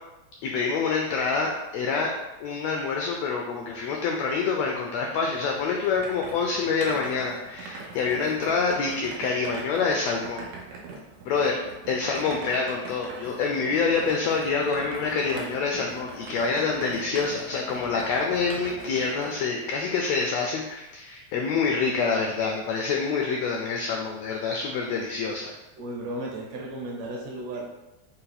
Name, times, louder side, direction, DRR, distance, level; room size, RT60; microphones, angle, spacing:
voice 1, 0.4-2.1 2.4-10.5 11.3-11.6 11.9-25.5, left 5 dB, 85° left, 0 dB, 1.5 m, -26 dB
sound 1, 5.4-19.4, right 3 dB, 90° right, 2.2 m, -41 dB
voice 2, 25.8-27.7, right 1 dB, 70° right, -2 dB, 1.8 m, -34 dB
5.2 x 2.3 x 4.1 m, 1.0 s
omnidirectional pair, 3.4 m